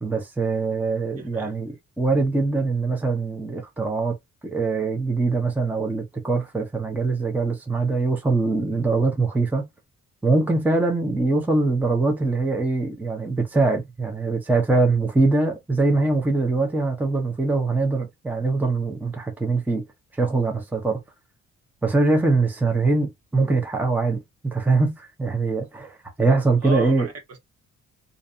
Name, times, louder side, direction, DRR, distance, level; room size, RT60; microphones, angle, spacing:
voice 1, 0.0-4.1 4.4-9.7 10.2-19.8 20.1-21.0 21.8-27.1, right 3 dB, 5° right, 0.7 m, -23 dB
voice 2, 1.1-1.6 26.6-27.4, right 2 dB, 55° right, 1.1 m, -34 dB
2.6 x 2.2 x 2.5 m
cardioid pair, 90°, 30 cm